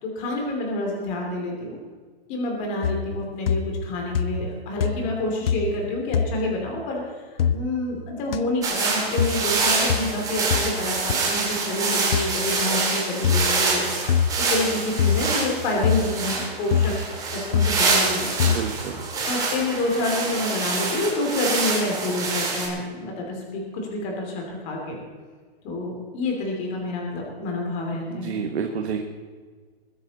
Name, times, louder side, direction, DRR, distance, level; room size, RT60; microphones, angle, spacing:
voice 1, 0.0-1.8 2.3-13.8 14.4-18.3 19.2-25.0 25.6-28.5, left 2 dB, 25° left, 0 dB, 2.8 m, -28 dB
sound 1, 2.8-3.2 3.5-3.9 4.1-4.5 4.8-5.2 5.5-5.8 6.1-6.3 7.4-7.6 8.3-8.4 9.2-9.4 9.9-10.1 10.5-10.7 11.1-11.2 12.1-12.3 13.2-13.5 14.1-14.4 15.0-15.3 15.8-16.1 16.7-17.0 17.5-17.8 18.4-18.6, left 7 dB, 65° left, 0.8 m, -23 dB
sound 2, 8.6-22.7, right 4 dB, 10° right, 2.2 m, -26 dB
voice 2, 18.5-19.1 28.1-29.0, right 6 dB, 80° right, 3 dB, 1.5 m, -29 dB
21.0 x 9.9 x 4.1 m, 1.5 s
hypercardioid pair, 170°, 32 cm